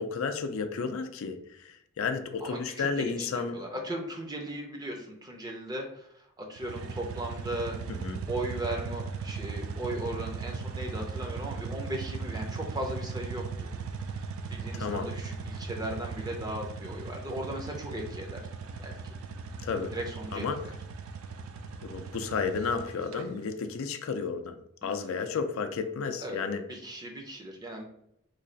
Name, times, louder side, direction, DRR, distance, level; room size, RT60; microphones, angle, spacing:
voice 1, 0.0-3.6 7.9-8.2 14.7-15.1 19.6-20.0 20.3-20.6 21.8-26.6, left 5 dB, 65° left, 7 dB, 0.4 m, -32 dB
voice 2, 2.4-6.1 6.4-7.8 8.3-13.7 14.1-14.2 14.5-18.4 18.8-19.1 19.9-20.7 24.8-25.2 26.2-26.4 26.7-27.8, right 1 dB, 20° right, 0 dB, 0.5 m, -37 dB
sound 1, 6.6-23.2, right 5 dB, 70° right, 0.4 m, -38 dB
3.1 x 2.4 x 3.8 m, 0.75 s
head